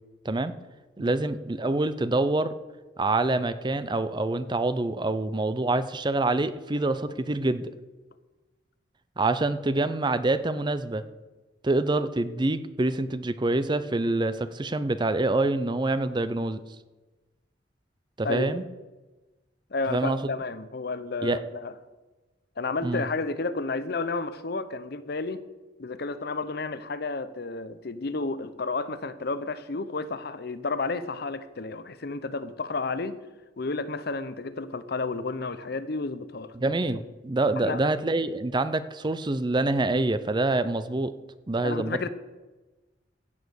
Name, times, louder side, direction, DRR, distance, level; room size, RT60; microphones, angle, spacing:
voice 1, 1.0-2.5 3.0-7.7 9.2-11.0 11.6-16.6 18.2-18.6 19.9-20.2 21.2-21.4 22.8-23.0 36.6-41.1 41.5-42.1, right 2 dB, 25° right, 13 dB, 0.6 m, -26 dB
voice 2, 18.2-18.6 19.7-21.7 22.6-25.4 25.8-33.2 33.6-36.5 37.6-37.9 41.6-42.1, left 3 dB, 60° left, 13 dB, 0.7 m, -31 dB
15.5 x 7.4 x 6.4 m, 1.2 s
head